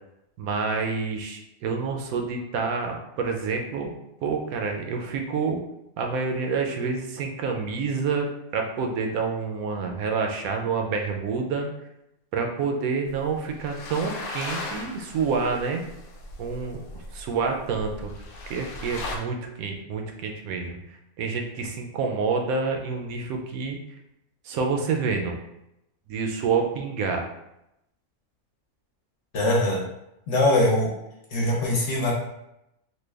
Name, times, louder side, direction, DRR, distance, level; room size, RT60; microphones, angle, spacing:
voice 1, 0.4-3.9 4.2-5.6 6.0-11.7 12.3-15.8 16.4-16.8 17.1-18.1 18.5-20.8 21.2-23.8 24.4-25.3 26.1-27.3, right 5 dB, 75° right, 2 dB, 1.0 m, -28 dB
sound 1, 13.1-19.2, left 2 dB, 85° left, 0.4 m, -38 dB
voice 2, 29.3-29.8 30.3-30.9 31.3-32.1, left 1 dB, 60° left, -2 dB, 1.0 m, -22 dB
3.2 x 2.2 x 3.3 m, 0.85 s
omnidirectional pair, 1.6 m